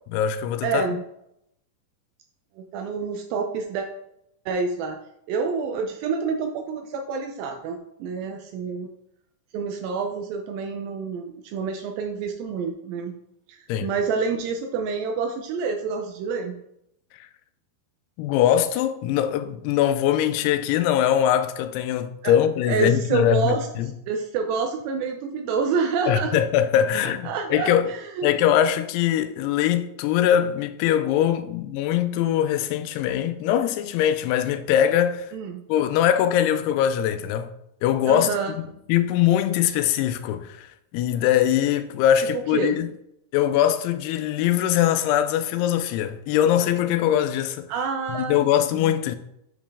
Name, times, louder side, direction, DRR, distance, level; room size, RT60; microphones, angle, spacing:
voice 1, 0.1-0.9 13.7-13.9 17.2-17.3 18.2-23.9 26.1-27.9 28.2-35.3 35.7-37.5 37.8-38.6 38.9-42.9 43.3-47.7 48.1-49.2, left 10 dB, 90° left, 2.6 m, -22 dB
voice 2, 0.6-1.0 2.6-3.9 4.5-5.0 5.3-8.9 9.5-13.1 13.5-16.6 22.2-22.3 22.7-23.7 24.1-26.3 27.3-28.3 35.3-35.6 38.1-38.6 42.2-42.3 42.5-42.8 47.7-48.5 48.8-48.9, right 5 dB, 80° right, 2.1 m, -27 dB
7.8 x 5.2 x 3.5 m
omnidirectional pair, 4.6 m